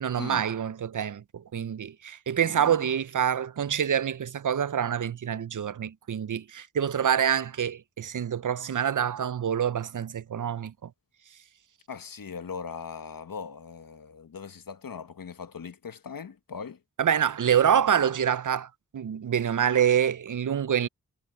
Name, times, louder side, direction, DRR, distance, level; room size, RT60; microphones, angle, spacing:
voice 1, 0.0-10.9 17.0-20.9, right 8 dB, 65° right, 0.6 m, -26 dB
voice 2, 2.4-2.7 11.9-16.8, left 6 dB, 75° left, 1.1 m, -40 dB
cardioid pair, 40°, 34 cm